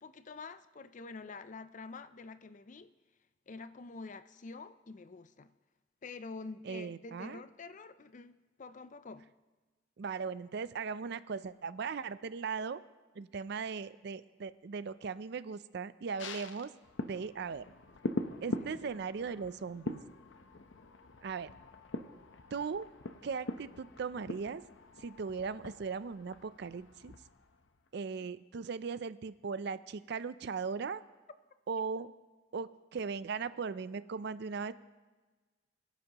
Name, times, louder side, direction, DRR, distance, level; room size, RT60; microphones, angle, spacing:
voice 1, 0.0-2.9 3.5-5.5 6.0-9.3 18.6-18.9 28.2-28.3, left 4 dB, 40° left, 0.5 m, -47 dB
voice 2, 6.7-7.4 10.0-12.8 13.2-16.7 17.1-17.7 18.4-20.0 21.2-21.5 22.5-22.9 23.2-24.6 25.0-27.1 27.9-31.0 31.7-32.1 32.5-34.7, right 5 dB, 60° right, 0.4 m, -38 dB
sound 1, 16.2-27.9 28.2-28.3, left 2 dB, 80° left, 0.8 m, -43 dB
23.0 x 11.0 x 2.9 m
head